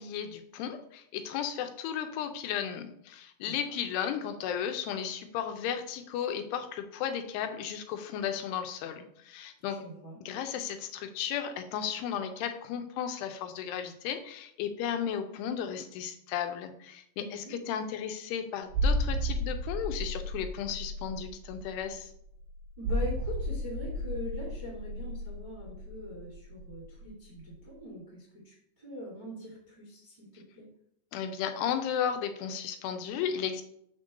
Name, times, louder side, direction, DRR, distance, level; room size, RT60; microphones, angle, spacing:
voice 1, 0.0-9.8 10.3-22.1 31.1-33.6, left 8 dB, 85° left, 7 dB, 2.8 m, -34 dB
voice 2, 3.4-3.8 9.7-10.2 17.2-17.5 22.8-30.7, equal, 25° right, -4 dB, 1.0 m, -42 dB
sound 1, 18.7-27.1 27.4-27.5, equal, 75° right, 1.8 m, -33 dB
6.5 x 3.8 x 6.3 m, 0.73 s
omnidirectional pair, 4.6 m